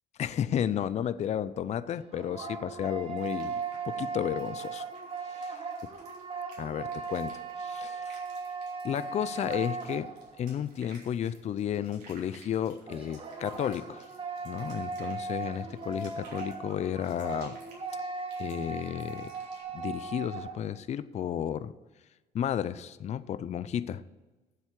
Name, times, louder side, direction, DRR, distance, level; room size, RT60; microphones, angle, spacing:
voice 1, 0.2-4.9 5.2-5.6 6.6-8.2 8.8-10.1 10.4-14.0 14.4-17.6 18.4-19.3 19.7-21.7 22.3-24.0, left 9 dB, 40° left, 15 dB, 0.5 m, -33 dB
sound 1, 1.8-10.6 12.9-20.6, right 4 dB, 35° right, 1.5 m, -38 dB
sound 2, 3.2-19.6, right 3 dB, 85° right, 3.7 m, -56 dB
8.0 x 7.4 x 8.2 m, 1.2 s
cardioid pair, 110°, 17 cm